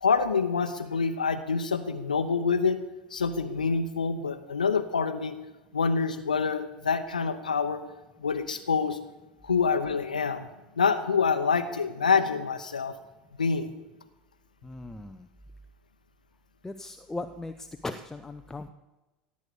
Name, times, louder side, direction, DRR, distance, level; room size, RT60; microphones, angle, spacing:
voice 1, 0.0-2.8 3.1-5.4 5.7-7.8 8.2-9.0 9.4-10.5 10.8-12.9 13.4-13.7, left 5 dB, 80° left, 8 dB, 0.8 m, -26 dB
voice 2, 14.6-15.2 16.6-18.7, left 2 dB, 10° left, 8 dB, 0.7 m, -38 dB
16.5 x 8.5 x 6.8 m, 1.0 s
figure-of-eight pair, 75°, 4 cm